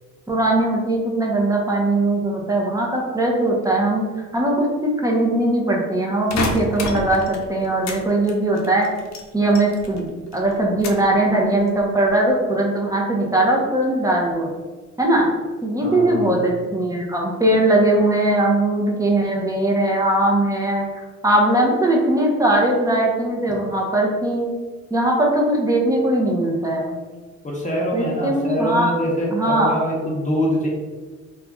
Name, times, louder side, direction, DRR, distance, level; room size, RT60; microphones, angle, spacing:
voice 1, 0.3-4.0 4.3-8.9 9.3-10.1 10.3-14.5 15.0-15.3 15.6-24.5 24.9-26.9 27.9-29.0 29.3-29.8, right 1 dB, 10° right, -2 dB, 0.8 m, -20 dB
sound 1, 6.3-8.0 8.3-10.1 10.3-11.1 11.6-12.1, left 3 dB, 65° left, 0.6 m, -29 dB
voice 2, 15.8-16.4 27.4-30.7, equal, 25° left, -4 dB, 1.0 m, -24 dB
2.8 x 2.4 x 3.6 m, 1.3 s
cardioid pair, 90°, 30 cm